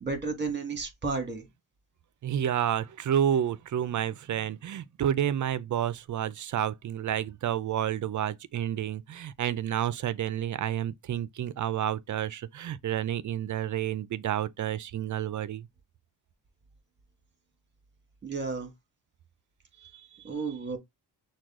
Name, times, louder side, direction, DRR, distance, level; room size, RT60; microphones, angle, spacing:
voice 1, 0.0-1.4 18.2-18.7 20.2-20.8, right 4 dB, 25° right, 1.5 m, -32 dB
voice 2, 2.2-15.7 19.8-20.1, right 10 dB, 50° right, 0.4 m, -30 dB
6.1 x 2.3 x 3.6 m
wide cardioid pair, 130°, 40 cm